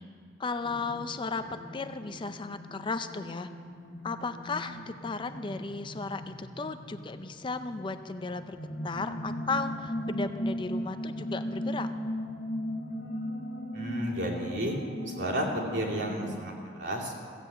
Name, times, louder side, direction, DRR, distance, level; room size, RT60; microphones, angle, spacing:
voice 1, 0.4-1.4 1.7-3.5 4.0-8.6 8.8-11.9, left 4 dB, 25° left, 9 dB, 0.5 m, -35 dB
sound 1, 0.6-16.3, equal, 85° left, 1.5 m, -38 dB
voice 2, 13.7-14.8 15.1-17.1, equal, 65° right, -3 dB, 2.8 m, -32 dB
15.0 x 7.8 x 8.4 m, 2.1 s
head